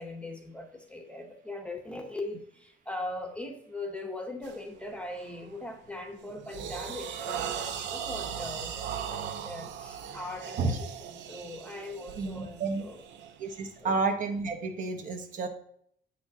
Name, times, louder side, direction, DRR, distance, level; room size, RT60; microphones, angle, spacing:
voice 1, 0.0-13.0 13.8-13.9, left 2 dB, 5° left, 3 dB, 0.8 m, -40 dB
sound 1, 4.4-4.7 5.2-5.5 5.9-14.0, right 8 dB, 75° right, 0.7 m, -38 dB
voice 2, 12.2-12.8 13.4-15.5, right 3 dB, 45° right, 6 dB, 1.0 m, -30 dB
8.2 x 6.1 x 2.7 m, 0.65 s
cardioid pair, 150°, 18 cm